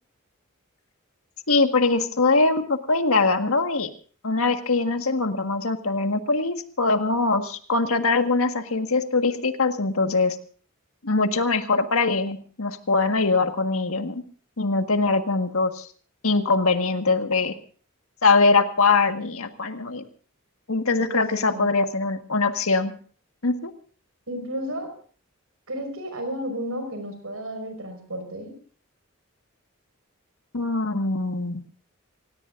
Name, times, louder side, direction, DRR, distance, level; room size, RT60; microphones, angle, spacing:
voice 1, 1.5-3.9 4.2-10.4 11.0-14.2 14.6-15.9 16.2-17.5 18.2-20.0 20.7-22.9 23.4-23.7 30.5-31.6, left 3 dB, 80° left, 6 dB, 1.7 m, -22 dB
voice 2, 24.3-25.0 25.7-28.5, equal, 80° right, 6 dB, 5.3 m, -32 dB
26.5 x 17.5 x 2.6 m, 0.43 s
head